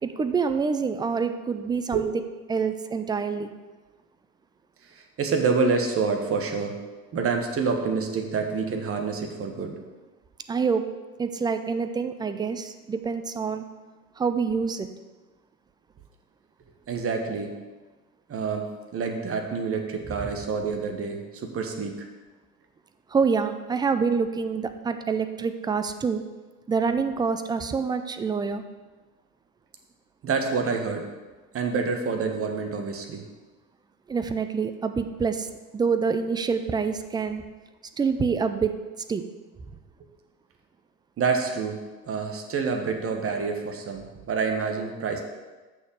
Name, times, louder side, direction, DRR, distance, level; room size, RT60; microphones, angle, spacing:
voice 1, 0.0-2.1 2.5-3.5 10.5-10.8 11.2-13.6 14.2-14.9 23.1-26.2 26.7-28.6 34.1-37.4 38.0-38.7 39.1-39.2, right 5 dB, 10° right, 9 dB, 0.4 m, -26 dB
voice 2, 4.9-6.8 7.1-9.8 16.9-17.5 18.3-22.1 30.2-31.1 31.5-33.2 41.2-41.8 42.1-45.2, right 5 dB, 30° right, 4 dB, 1.5 m, -27 dB
6.4 x 5.9 x 7.3 m, 1.3 s
figure-of-eight pair, 75°, 44 cm